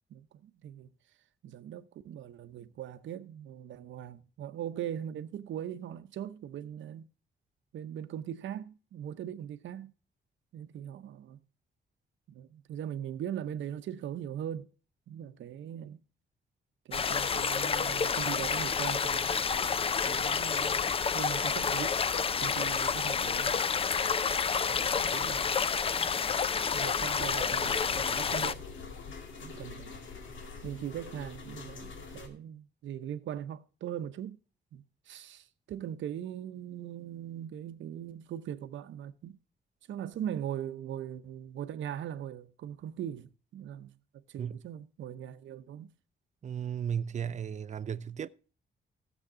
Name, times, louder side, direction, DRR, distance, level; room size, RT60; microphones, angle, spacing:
voice 1, 0.1-0.9 1.4-7.1 7.7-9.9 10.5-11.4 12.3-14.7 15.1-16.0 16.8-19.5 20.1-23.5 24.7-25.6 25.9-26.1 26.7-28.7 29.4-29.9 30.6-34.4 34.7-39.4 39.9-44.0 44.3-45.9, right 10 dB, 85° right, 0.9 m, -40 dB
sound 1, 16.9-28.5, left 6 dB, 30° left, 0.4 m, -29 dB
sound 2, 27.2-32.3, left 4 dB, 90° left, 2.1 m, -45 dB
voice 2, 46.4-48.3, right 8 dB, 40° right, 0.5 m, -35 dB
16.0 x 7.2 x 3.8 m
wide cardioid pair, 145°, 19 cm